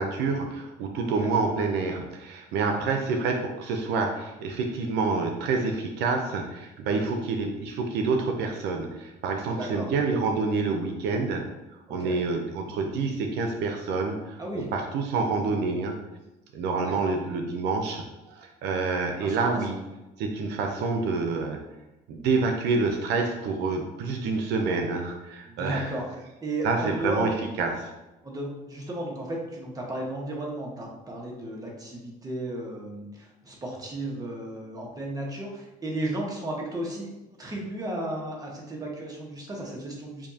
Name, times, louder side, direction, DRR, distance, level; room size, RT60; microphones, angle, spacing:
voice 1, 0.0-11.4 11.9-16.0 16.5-19.7 20.2-21.6 22.1-25.9 26.6-27.3 27.6-27.9, right 4 dB, 85° right, 3 dB, 0.6 m, -27 dB
voice 2, 9.5-9.9 11.9-12.2 14.4-14.7 15.3-15.6 16.8-17.1 19.2-19.4 25.5-26.0 26.4-27.3 28.2-40.3, right 1 dB, 20° right, -2 dB, 1.2 m, -34 dB
7.1 x 2.6 x 2.8 m, 1.0 s
cardioid pair, 110°, 17 cm